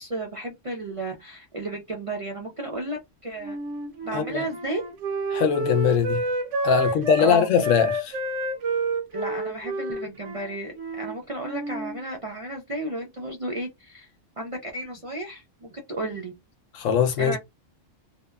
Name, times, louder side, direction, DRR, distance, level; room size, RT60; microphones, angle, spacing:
voice 1, 0.0-3.6 4.0-4.8 6.8-7.5 9.1-14.1 14.4-16.3 17.2-17.4, right 2 dB, 60° right, 0.3 m, -33 dB
Wind instrument woodwind instrument, 3.4-7.3 7.6-11.2 11.4-12.0, right 1 dB, 75° right, 0.9 m, -29 dB
voice 2, 4.1-4.4 5.3-6.2 6.6-8.2 16.7-17.4, left 7 dB, 80° left, 1.0 m, -22 dB
2.7 x 2.1 x 2.2 m
omnidirectional pair, 1.3 m